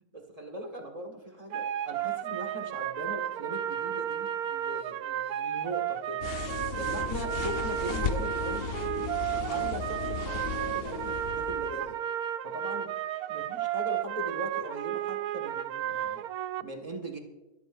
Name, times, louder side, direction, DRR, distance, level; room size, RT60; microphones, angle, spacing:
voice 1, 0.1-6.2 6.8-8.7 9.3-12.0 12.4-12.9 13.3-16.2 16.6-17.2, right 1 dB, 20° right, 3 dB, 1.7 m, -40 dB
sound 1, 1.5-16.6, right 11 dB, 70° right, 1.0 m, -33 dB
sound 2, 6.2-12.0, left 6 dB, 65° left, 0.6 m, -35 dB
22.5 x 13.0 x 2.6 m, 1.0 s
omnidirectional pair, 1.8 m